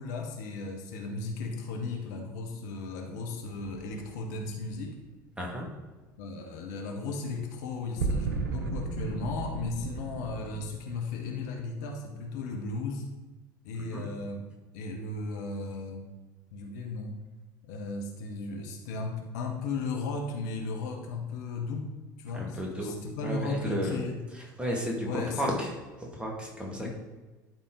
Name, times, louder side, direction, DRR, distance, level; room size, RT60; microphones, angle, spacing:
voice 1, 0.0-5.0 6.2-13.1 13.6-14.5 14.7-16.1 16.5-17.2 17.6-24.2 25.0-25.4 26.8-26.9, left 3 dB, 60° left, 2 dB, 1.1 m, -35 dB
sound 1, 3.6-5.0 8.0-10.7, right 4 dB, 70° right, 0.8 m, -34 dB
voice 2, 5.4-5.7 13.9-14.0 22.3-22.9 23.2-24.0 24.6-25.7 26.0-26.9, equal, 10° right, -1 dB, 2.1 m, -33 dB
12.0 x 4.3 x 3.8 m, 1.2 s
figure-of-eight pair, 65°, 11 cm